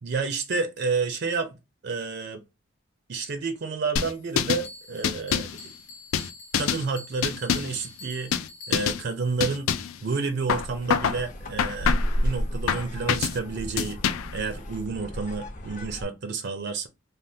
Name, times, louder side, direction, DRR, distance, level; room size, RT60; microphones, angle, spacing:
voice 1, 0.0-1.6 1.8-2.4 3.1-5.5 6.5-9.7 10.0-14.0 14.3-16.9, right 4 dB, 55° right, 0.5 m, -30 dB
sound 1, 4.0-4.7 5.0-5.6 6.1-6.8 7.2-7.8 8.3-8.5 8.7-9.0 9.4-10.0 10.5-11.2 11.6-12.2 12.7-13.4 13.8-14.4, left 8 dB, 85° left, 0.4 m, -26 dB
Bell, 4.6-9.2, left 2 dB, 65° left, 1.0 m, -46 dB
sound 2, 10.5-16.0, equal, 40° left, 0.6 m, -32 dB
3.4 x 2.2 x 2.6 m
head